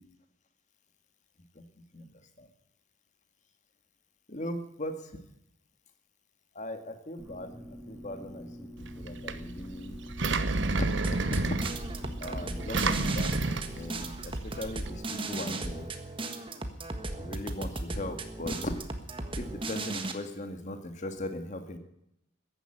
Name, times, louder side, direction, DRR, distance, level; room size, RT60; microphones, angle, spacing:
voice 1, 1.6-2.1 2.4-2.5 4.3-5.1 6.6-10.0 10.6-11.6 12.2-15.9 17.2-18.8 19.3-21.8, left 1 dB, 35° left, 7 dB, 1.8 m, -38 dB
sound 1, 7.2-13.6, equal, 5° right, 1.7 m, -46 dB
Engine, 8.8-14.9, right 3 dB, 60° right, 1.0 m, -32 dB
sound 2, 11.0-20.1, right 2 dB, 25° right, 1.5 m, -36 dB
14.5 x 10.5 x 8.9 m, 0.79 s
head